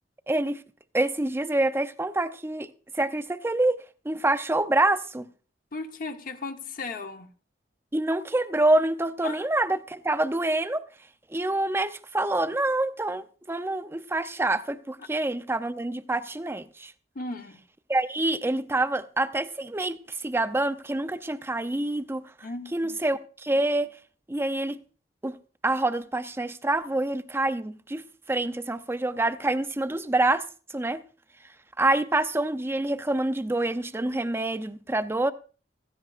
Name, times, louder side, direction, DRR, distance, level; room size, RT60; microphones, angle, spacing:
voice 1, 0.3-0.6 0.9-5.3 7.9-10.8 11.3-16.9 17.9-22.3 22.7-23.9 24.3-24.8 25.2-25.4 25.6-30.4 30.7-31.0 31.8-35.3, right 2 dB, 15° right, 0.5 m, -26 dB
voice 2, 5.7-7.3 9.2-9.4 17.1-17.6 22.4-23.0, left 3 dB, 50° left, 1.0 m, -36 dB
16.0 x 14.5 x 2.5 m
head